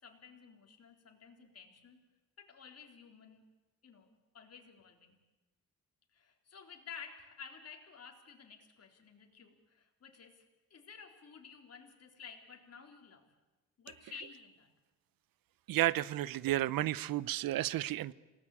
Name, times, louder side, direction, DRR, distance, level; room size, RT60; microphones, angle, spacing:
voice 1, 0.0-2.0 2.4-3.4 3.8-5.2 6.1-10.4 10.7-13.3 13.8-14.7, left 6 dB, 45° left, 3 dB, 3.9 m, -53 dB
voice 2, 15.7-18.1, right 14 dB, 80° right, 20 dB, 0.8 m, -32 dB
28.0 x 18.5 x 8.5 m, 1.1 s
cardioid pair, 100°, 34 cm